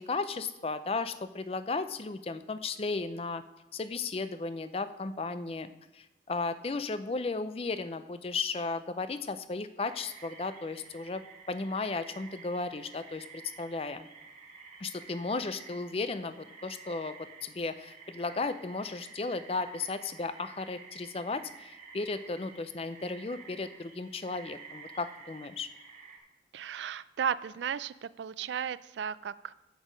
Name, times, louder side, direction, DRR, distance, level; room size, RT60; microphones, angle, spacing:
voice 1, 0.0-3.4 3.7-14.1 14.8-17.2 17.4-25.7, left 3 dB, 35° left, 12 dB, 0.4 m, -35 dB
sound 1, 9.8-26.2, right 5 dB, 40° right, 1.6 m, -51 dB
voice 2, 26.5-29.5, right 8 dB, 85° right, 17 dB, 0.3 m, -35 dB
8.2 x 8.1 x 5.1 m, 0.97 s
head